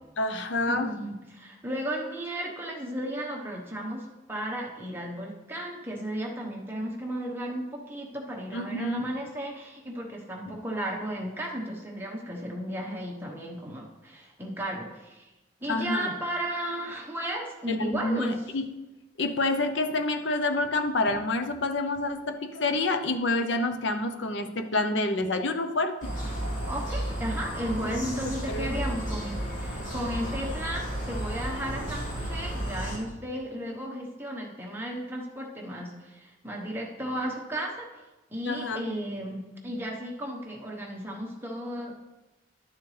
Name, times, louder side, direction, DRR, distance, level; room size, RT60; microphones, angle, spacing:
voice 1, 0.2-0.9 8.5-9.1 10.5-10.6 15.7-16.1 17.7-18.7 19.2-26.1 28.5-28.7 38.4-38.8, left 2 dB, 70° left, 7 dB, 0.7 m, -28 dB
voice 2, 0.7-15.3 15.6-18.4 26.6-37.9 38.3-42.0, equal, 10° right, -1 dB, 1.1 m, -34 dB
sound 1, 26.0-33.0, equal, 45° left, 2.3 m, -33 dB
11.5 x 6.9 x 3.3 m, 1.1 s
head